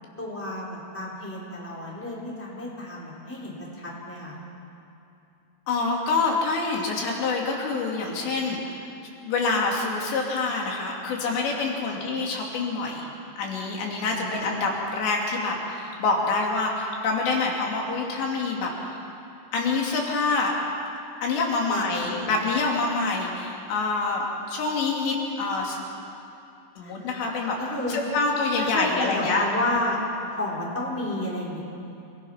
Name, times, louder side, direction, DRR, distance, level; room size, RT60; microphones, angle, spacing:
voice 1, 0.2-4.3 11.9-12.0 14.0-14.6 21.6-22.3 26.8-27.1 27.6-28.0 28.6-30.0 30.3-31.6, left 1 dB, 5° left, -5 dB, 4.1 m, -31 dB
voice 2, 5.7-8.8 9.2-13.1 13.4-18.7 19.5-20.5 21.2-25.8 26.8-27.6 27.9-29.5, left 3 dB, 80° left, -1 dB, 4.9 m, -26 dB
28.5 x 20.5 x 5.8 m, 2.7 s
omnidirectional pair, 5.0 m